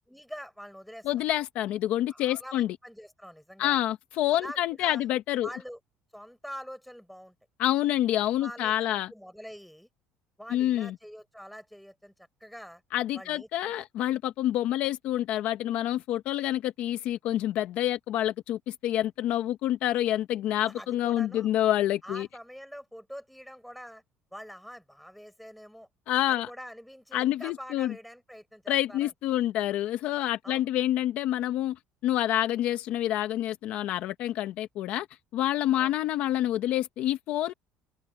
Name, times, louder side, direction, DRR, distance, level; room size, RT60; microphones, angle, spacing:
voice 1, 0.1-1.1 2.1-3.9 4.3-5.1 5.4-5.8 6.1-7.3 8.4-9.9 10.4-12.8 13.1-13.7 20.6-21.5 22.0-24.0 24.3-25.9 26.3-29.1 30.4-30.7 35.7-36.0, equal, ahead, 4.3 m, -45 dB
voice 2, 1.0-2.7 3.6-5.5 7.6-9.1 10.5-10.9 12.9-22.3 26.1-26.5 27.1-27.9 28.7-35.1 35.3-37.5, left 13 dB, 50° left, 0.9 m, -27 dB
cardioid pair, 175°, 3 cm